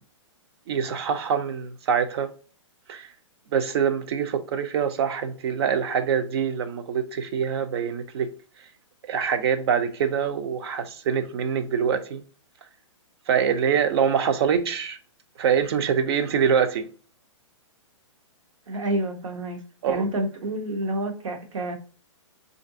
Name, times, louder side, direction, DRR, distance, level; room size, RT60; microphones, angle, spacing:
voice 1, 0.7-2.3 2.9-3.1 3.5-8.3 9.0-12.2 13.3-15.0 15.4-16.9 19.8-20.1, right 7 dB, 55° right, 0.6 m, -24 dB
voice 2, 18.7-19.6 19.9-21.8, right 1 dB, 75° right, 1.0 m, -28 dB
3.7 x 2.6 x 2.5 m
hypercardioid pair, 145°, 16 cm